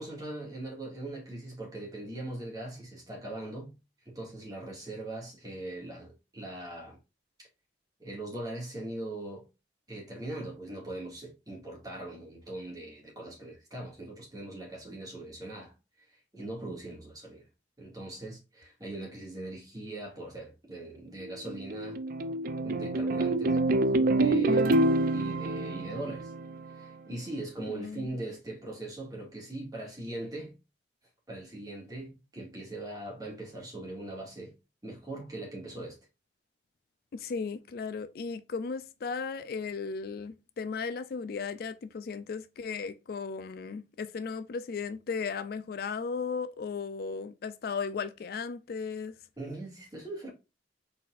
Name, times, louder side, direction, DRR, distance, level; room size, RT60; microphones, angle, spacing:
voice 1, 0.0-3.7 4.1-7.0 8.0-9.4 9.9-15.7 16.3-17.4 17.8-22.0 22.6-24.8 25.1-26.3 26.7-30.5 31.3-34.5 34.8-36.0 49.4-50.3, right 2 dB, 20° right, 2.0 m, -40 dB
sound 1, 21.2-26.8, right 2 dB, 50° right, 0.4 m, -27 dB
voice 2, 27.7-28.1 37.1-49.2, left 5 dB, 60° left, 0.4 m, -36 dB
4.1 x 4.0 x 2.5 m
head